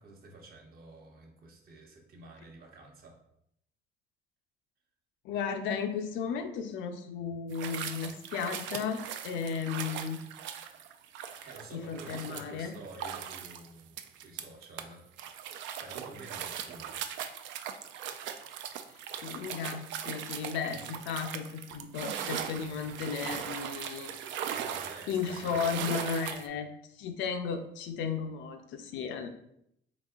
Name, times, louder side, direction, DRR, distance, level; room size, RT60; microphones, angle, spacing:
voice 1, 0.0-3.2 11.4-15.0 15.3-17.1 20.7-20.8 24.5-26.0, right 2 dB, 50° right, 1 dB, 0.9 m, -50 dB
voice 2, 5.2-10.2 11.7-12.8 19.2-24.1 25.1-29.3, left 6 dB, 85° left, 7 dB, 0.5 m, -34 dB
sound 1, 7.5-14.8 15.2-26.5, right 9 dB, 80° right, 0.4 m, -39 dB
4.0 x 3.6 x 2.4 m, 0.76 s
cardioid pair, 115°, 19 cm